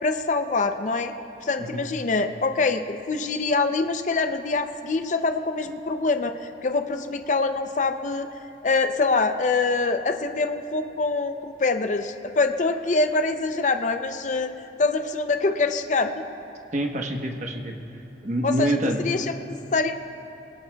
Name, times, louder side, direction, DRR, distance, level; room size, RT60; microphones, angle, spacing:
voice 1, 0.0-1.1 1.4-8.3 8.6-14.5 14.8-16.1 18.4-18.8 19.0-19.9, left 3 dB, 45° left, 7 dB, 0.5 m, -24 dB
voice 2, 16.7-17.7 18.2-19.0, right 1 dB, 40° right, 3 dB, 1.0 m, -26 dB
22.0 x 18.0 x 2.3 m, 2.9 s
head